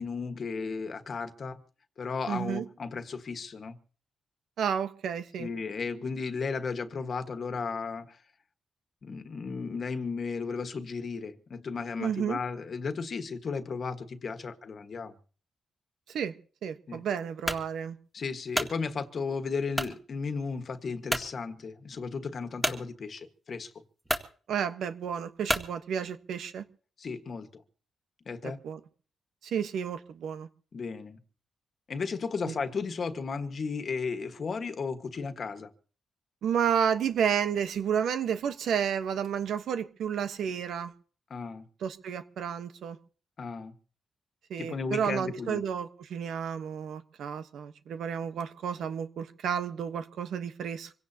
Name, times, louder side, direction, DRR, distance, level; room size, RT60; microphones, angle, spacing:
voice 1, 0.0-1.6 2.0-3.7 5.4-8.2 9.0-15.1 16.9-17.0 18.1-23.7 27.0-27.6 28.2-28.6 30.7-31.2 31.9-35.7 41.3-41.7 43.4-43.7 44.6-45.6, left 5 dB, 50° left, 1.5 m, -34 dB
voice 2, 2.3-2.7 4.6-5.5 12.0-12.4 16.1-16.3 16.6-18.0 24.5-26.6 28.4-28.8 29.4-30.5 32.4-32.5 36.4-40.9 41.8-43.0 44.5-51.0, right 8 dB, 85° right, 1.2 m, -31 dB
sound 1, 17.5-17.7 18.3-18.8 19.7-20.0 20.5-20.6 21.1-21.3 22.6-22.8 23.6-23.7 24.0-24.3 25.5-25.7, right 1 dB, 10° right, 2.0 m, -30 dB
26.0 x 17.0 x 2.9 m
cardioid pair, 90°, 0 cm